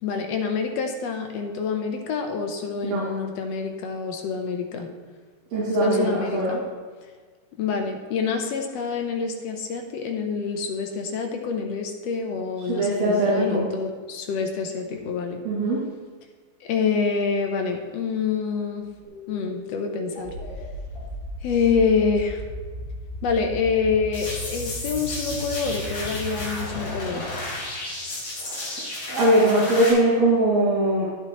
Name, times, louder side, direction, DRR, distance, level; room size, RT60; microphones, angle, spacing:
voice 1, 0.0-4.9 5.8-6.6 7.6-15.4 16.6-18.9 19.3-20.3 21.4-22.4 23.2-27.3, left 5 dB, 70° left, 4 dB, 1.8 m, -26 dB
voice 2, 5.5-6.6 12.7-13.6 15.4-15.8 27.1-27.3 28.4-28.8 29.1-31.1, right 1 dB, 65° right, -8 dB, 3.5 m, -21 dB
sound 1, 19.0-28.4, left 1 dB, 25° left, 3.9 m, -36 dB
sound 2, 24.1-29.9, left 2 dB, 50° left, 3.9 m, -33 dB
11.5 x 10.0 x 3.0 m, 1.5 s
omnidirectional pair, 3.4 m